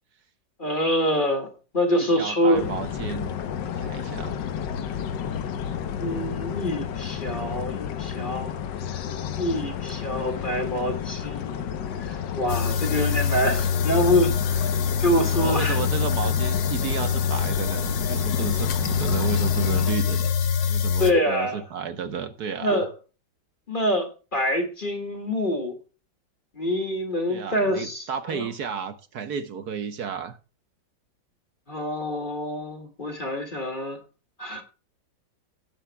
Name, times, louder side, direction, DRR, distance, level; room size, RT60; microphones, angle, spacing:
voice 1, 0.6-2.7 6.0-8.6 9.3-11.6 12.0-14.7 15.0-15.8 21.0-21.6 22.6-22.9 23.7-25.8 26.6-28.5 31.7-34.0 34.4-34.6, equal, 30° left, 2.1 m, -26 dB
voice 2, 1.9-3.4 3.7-4.4 15.3-20.3 20.7-22.9 27.3-30.4, right 7 dB, 65° right, 1.4 m, -32 dB
sound 1, 2.5-19.9, left 8 dB, 80° left, 1.6 m, -32 dB
sound 2, 12.5-21.1, left 7 dB, 60° left, 1.5 m, -25 dB
17.5 x 9.2 x 2.2 m
omnidirectional pair, 1.9 m